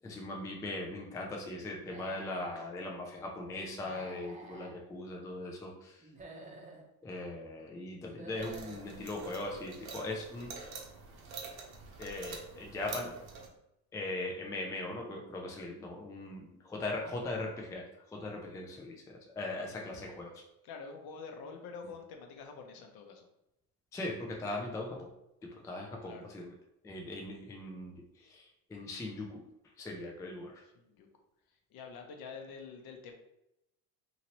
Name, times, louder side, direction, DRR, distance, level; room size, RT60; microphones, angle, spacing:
voice 1, 0.0-6.1 7.0-10.5 12.0-13.1 13.9-20.3 23.9-25.1 25.4-26.5 26.8-29.4 29.8-30.6, left 2 dB, 10° left, 0 dB, 0.3 m, -40 dB
Human voice / Animal, 1.8-2.6 3.7-4.7 6.0-6.8 8.0-8.8, right 2 dB, 15° right, 0.7 m, -50 dB
sound 1, 8.4-13.5, right 4 dB, 55° right, 0.9 m, -46 dB
voice 2, 19.8-20.2 20.6-23.3 26.1-26.3 30.6-31.1 31.5-33.1, left 5 dB, 55° left, 4 dB, 0.8 m, -47 dB
2.8 x 2.7 x 2.9 m, 0.86 s
supercardioid pair, 110°, 44 cm